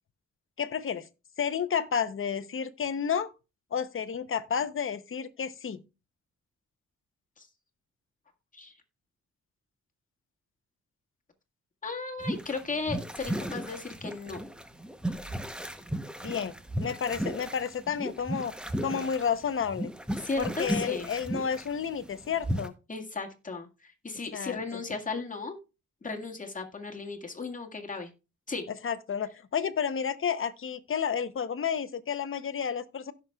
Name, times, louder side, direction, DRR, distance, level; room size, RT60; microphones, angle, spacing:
voice 1, 0.6-1.1 1.4-3.3 3.7-5.8 16.2-16.5 16.8-18.5 18.8-19.9 20.4-22.7 24.3-24.8 28.8-33.1, left 7 dB, 45° left, 0.8 m, -31 dB
voice 2, 11.8-14.4 20.2-21.1 22.9-25.6 26.0-28.1 28.5-28.7, left 3 dB, 25° left, 1.8 m, -36 dB
sound 1, 12.2-22.7, equal, 5° right, 0.9 m, -35 dB
16.5 x 6.0 x 2.3 m
cardioid pair, 100°, 30 cm